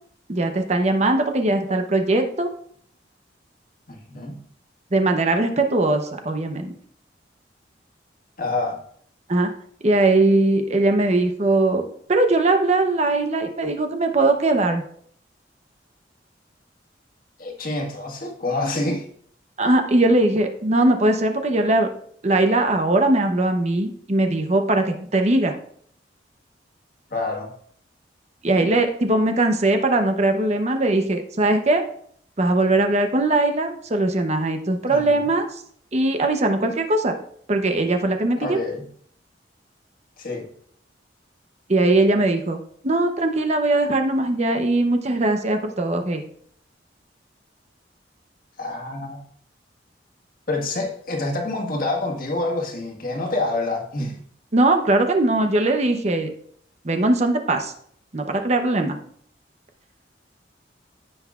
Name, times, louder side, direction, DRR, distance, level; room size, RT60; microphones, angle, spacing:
voice 1, 0.3-2.5 4.9-6.7 9.3-9.5 9.8-14.8 19.6-21.9 22.2-25.5 28.4-31.8 32.4-35.6 35.9-37.1 37.5-38.6 41.7-42.6 42.8-46.2 54.5-56.3 56.8-57.7 58.1-59.0, right 2 dB, 40° right, 0.8 m, -20 dB
voice 2, 3.9-4.4 8.4-8.8 17.4-19.0 27.1-27.5 34.9-35.3 38.4-38.9 40.2-40.5 48.6-49.2 50.5-54.2, left 2 dB, 50° left, 1.6 m, -27 dB
15.5 x 5.8 x 2.4 m
head